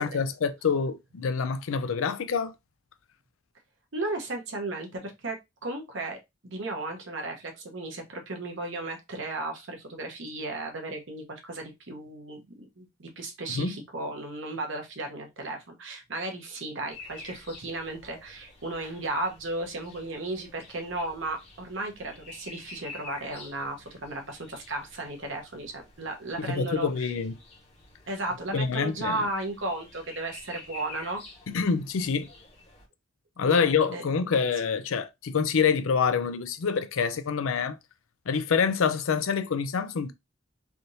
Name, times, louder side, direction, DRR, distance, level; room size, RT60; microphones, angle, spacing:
voice 1, 0.0-2.5 13.5-13.7 26.4-27.3 28.5-29.2 31.5-32.3 33.4-37.8 38.3-40.1, left 6 dB, 75° left, 0.4 m, -26 dB
voice 2, 3.9-27.1 28.1-31.2 33.4-33.6 33.9-34.1, right 2 dB, 65° right, 0.9 m, -35 dB
sound 1, 16.9-32.8, left 3 dB, 30° left, 0.9 m, -49 dB
3.4 x 2.8 x 2.6 m
head